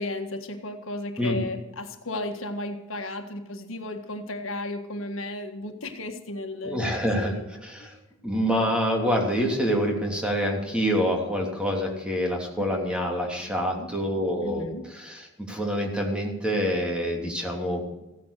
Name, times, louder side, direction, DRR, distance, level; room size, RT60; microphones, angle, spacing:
voice 1, 0.0-6.9 7.4-7.5 7.8-7.9 12.6-12.8 13.4-13.9 14.4-14.9, left 2 dB, 80° left, 5 dB, 1.7 m, -34 dB
voice 2, 6.6-7.3 7.6-8.0 8.2-18.0, equal, 5° right, 0 dB, 3.1 m, -26 dB
16.0 x 10.5 x 6.7 m, 0.96 s
head